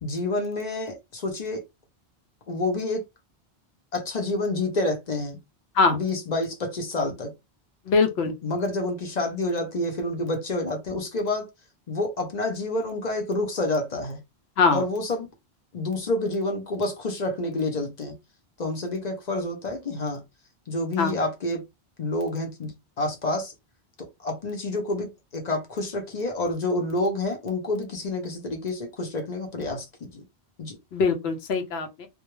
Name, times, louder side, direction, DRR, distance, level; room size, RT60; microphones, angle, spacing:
voice 1, 0.0-1.6 2.5-3.0 3.9-5.4 5.8-7.3 8.4-11.5 11.9-14.2 14.7-15.3 15.7-18.1 18.6-20.2 20.7-21.6 22.0-22.7 23.0-23.5 24.0-30.2 30.6-30.8, left 2 dB, 45° left, 0.7 m, -28 dB
voice 2, 7.9-8.3 14.6-14.8 21.0-21.2 30.9-32.1, left 4 dB, 80° left, 0.9 m, -22 dB
2.2 x 2.1 x 3.0 m
omnidirectional pair, 1.1 m